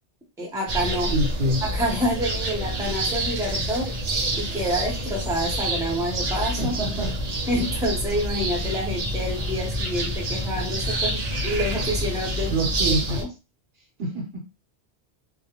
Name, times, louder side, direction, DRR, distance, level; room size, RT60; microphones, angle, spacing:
voice 1, 0.4-1.1 1.6-3.9 4.4-6.8 7.5-12.5 13.1-13.3, equal, 5° right, 0.7 m, -28 dB
sound 1, 0.7-13.2, right 1 dB, 45° right, 0.6 m, -27 dB
voice 2, 1.1-1.6 6.6-7.2 12.5-13.2 14.0-14.4, right 1 dB, 65° right, 1.0 m, -26 dB
2.4 x 2.2 x 2.9 m
omnidirectional pair, 1.1 m